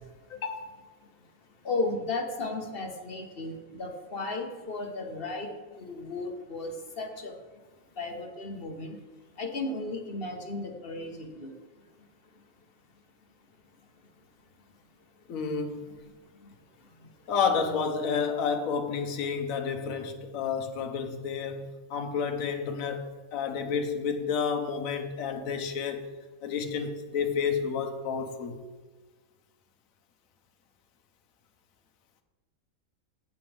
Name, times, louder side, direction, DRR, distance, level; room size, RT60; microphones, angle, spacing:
voice 1, 0.3-0.7 15.3-15.9 17.3-26.1 26.4-28.6, left 6 dB, 65° left, 1.3 m, -30 dB
voice 2, 1.6-5.5 5.8-7.3 8.0-9.0 9.4-11.5, left 2 dB, 40° left, 1.2 m, -34 dB
16.0 x 7.2 x 3.4 m
omnidirectional pair, 1.6 m